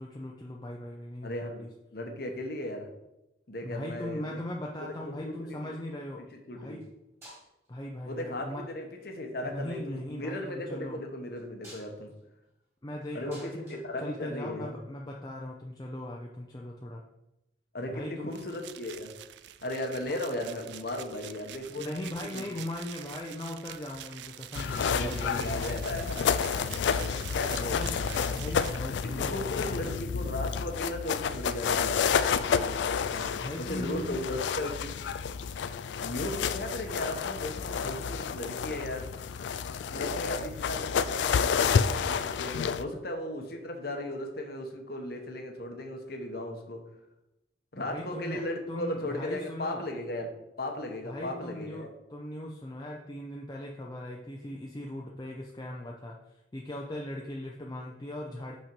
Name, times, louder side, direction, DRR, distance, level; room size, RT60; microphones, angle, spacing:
voice 1, 0.0-1.7 3.6-6.2 6.5-6.9 7.7-8.6 9.4-11.0 12.8-17.0 17.8-18.3 21.7-25.9 27.7-28.0 28.3-29.9 33.4-34.2 47.8-49.8 51.0-58.5, left 1 dB, 20° left, -2 dB, 0.5 m, -39 dB
voice 2, 1.2-2.9 3.5-4.4 4.8-5.6 6.5-6.8 8.0-12.1 13.1-14.7 17.7-19.1 19.6-21.9 22.3-22.4 24.9-28.1 29.0-33.3 33.6-34.9 36.0-39.1 39.9-46.8 47.7-50.3 50.6-51.9, left 1 dB, 55° left, 3 dB, 1.0 m, -36 dB
sound 1, 4.9-5.6 6.7-6.9 7.2-7.8 8.8-9.2 11.3-14.7 16.1-16.2, equal, 15° right, 2.0 m, -54 dB
sound 2, 18.3-29.5, right 11 dB, 65° right, 0.3 m, -46 dB
sound 3, 24.5-42.8, left 6 dB, 70° left, 0.3 m, -30 dB
5.6 x 4.4 x 5.2 m, 0.92 s
head